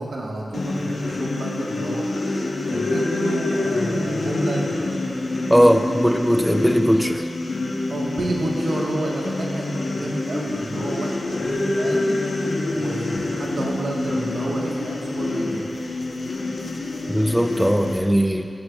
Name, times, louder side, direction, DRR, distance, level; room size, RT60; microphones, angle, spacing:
voice 1, 0.0-2.1 2.7-4.8 7.9-12.2 12.7-15.7, right 1 dB, 85° right, -3 dB, 1.4 m, -30 dB
sound 1, 0.5-18.0, left 2 dB, 75° left, 1.0 m, -26 dB
voice 2, 5.5-7.3 17.1-18.5, equal, ahead, 6 dB, 0.5 m, -19 dB
13.5 x 11.5 x 2.4 m, 2.5 s
cardioid pair, 50°, 0 cm